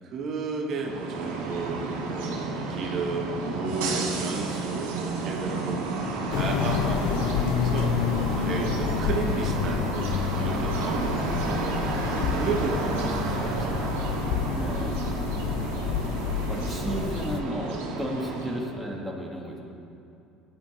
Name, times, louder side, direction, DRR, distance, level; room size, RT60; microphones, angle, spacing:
voice 1, 0.0-5.8 6.3-7.9 8.3-10.0 10.4-11.5 12.1-13.8 14.2-14.4 15.6-16.0, right 4 dB, 55° right, 1 dB, 1.2 m, -33 dB
sound 1, 0.6-18.7, right 3 dB, 85° right, 1.8 m, -31 dB
sound 2, 6.3-17.4, left 8 dB, 70° left, 0.5 m, -29 dB
voice 2, 12.1-12.8 14.5-15.4 16.5-19.6, equal, ahead, -2 dB, 1.9 m, -34 dB
15.5 x 9.6 x 3.2 m, 2.6 s
supercardioid pair, 85°, 0 cm